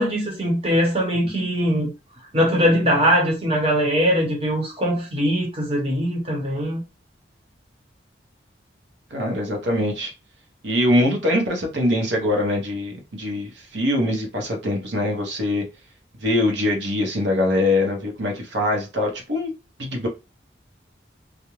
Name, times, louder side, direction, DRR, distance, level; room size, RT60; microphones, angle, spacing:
voice 1, 0.0-1.9 2.3-6.8, equal, 30° right, 0.9 m, -21 dB
voice 2, 9.1-10.1 10.6-15.6 16.2-19.5 19.8-20.1, left 1 dB, 75° right, 0.8 m, -23 dB
2.4 x 2.1 x 3.0 m
head